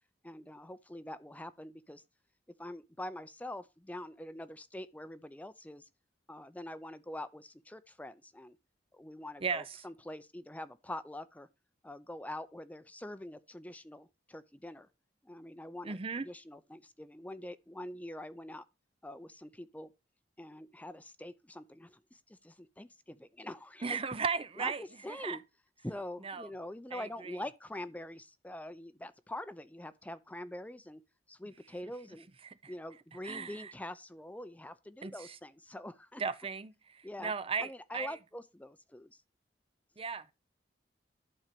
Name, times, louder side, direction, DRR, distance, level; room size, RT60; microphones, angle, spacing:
voice 1, 0.2-2.0 2.6-5.9 6.3-8.6 8.9-11.5 11.8-14.9 15.2-18.6 19.0-19.9 20.4-24.0 24.6-25.4 25.8-31.0 31.3-32.3 32.7-36.2 37.0-37.3 37.6-39.2, left 1 dB, 10° left, 0.5 m, -45 dB
voice 2, 9.4-9.8 15.8-16.3 23.8-25.4 26.2-26.5 26.9-27.4 32.4-32.7 33.1-33.7 35.0-35.4 36.2-38.2 40.0-40.3, right 5 dB, 35° right, 0.6 m, -37 dB
11.5 x 4.4 x 6.8 m
head